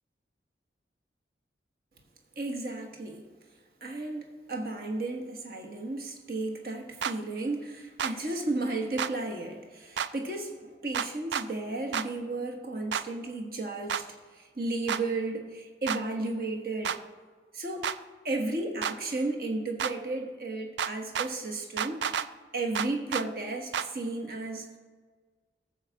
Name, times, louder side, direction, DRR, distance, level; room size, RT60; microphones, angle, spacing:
voice 1, 2.4-3.3 3.8-17.0 17.5-17.9 18.2-22.0 22.5-24.8, right 2 dB, 55° right, 2 dB, 1.3 m, -34 dB
sound 1, 7.0-7.1 8.0-8.1 9.0-9.1 10.0-10.1 10.9-11.5 11.9-12.1 12.9-13.0 13.9-14.0 14.9-15.0 15.9-16.0 16.8-17.0 17.8-18.0 18.8-19.0 19.8-19.9 20.8-21.3 21.8-22.3 22.7-23.3 23.7-23.9, right 8 dB, 85° right, 0.4 m, -30 dB
14.0 x 4.8 x 7.1 m, 1.5 s
head